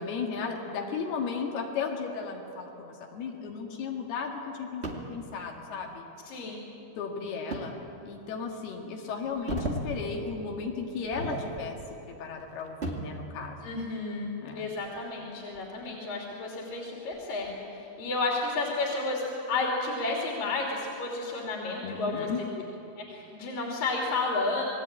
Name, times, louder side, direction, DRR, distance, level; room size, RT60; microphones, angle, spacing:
voice 1, 0.0-6.1 7.0-7.7 8.0-11.8 12.0-13.7 14.4-14.7 21.8-22.4, left 5 dB, 90° left, 1 dB, 4.0 m, -35 dB
sound 1, 4.8-5.1 7.5-7.7 8.2-8.3 9.2-9.9 10.2-10.5 11.0-11.9 12.2-13.2 14.7-15.8 16.3-16.4 17.1-17.5, right 2 dB, 25° right, 1.5 m, -36 dB
voice 2, 6.3-6.6 13.6-22.3 23.1-24.6, left 3 dB, 65° left, -2 dB, 4.6 m, -31 dB
28.0 x 20.5 x 9.0 m, 2.9 s
omnidirectional pair, 4.4 m